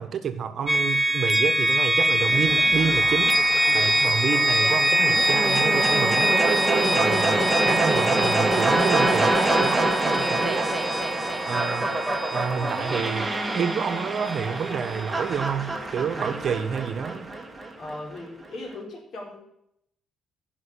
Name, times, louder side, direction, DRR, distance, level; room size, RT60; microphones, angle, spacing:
voice 1, 0.0-3.4 3.7-10.7 11.5-11.9 12.3-17.3, right 7 dB, 60° right, 9 dB, 1.2 m, -29 dB
sound 1, 0.7-14.5, right 1 dB, 5° left, 0.8 m, -24 dB
sound 2, 2.2-18.2, right 2 dB, 15° right, 1.9 m, -26 dB
voice 2, 17.8-19.4, left 2 dB, 60° left, 1 dB, 4.0 m, -38 dB
9.8 x 6.3 x 8.3 m, 0.75 s
cardioid pair, 90°, 0 cm